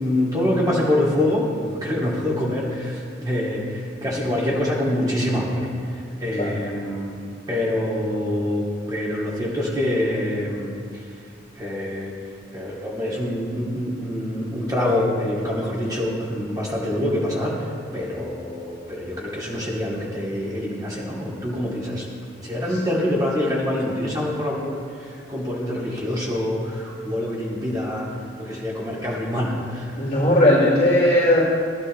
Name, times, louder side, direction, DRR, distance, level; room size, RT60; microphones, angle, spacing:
voice 1, 0.0-5.7 6.2-7.2 7.5-10.8 11.6-12.1 12.5-17.5 17.9-22.0 22.4-28.1 28.4-29.9, left 1 dB, 20° right, -6 dB, 2.7 m, -25 dB
voice 2, 29.9-31.4, left 1 dB, 40° left, -12 dB, 3.3 m, -17 dB
16.5 x 11.0 x 3.4 m, 2.3 s
head